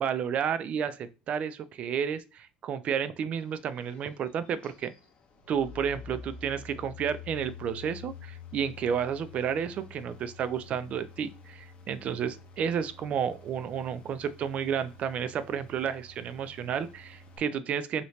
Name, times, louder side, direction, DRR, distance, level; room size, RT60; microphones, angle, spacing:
voice 1, 0.0-4.9 5.5-18.0, right 7 dB, 40° right, 0.3 m, -31 dB
sound 1, 3.3-17.4, left 5 dB, 35° left, 0.7 m, -49 dB
2.9 x 2.8 x 3.1 m
cardioid pair, 145°, 3 cm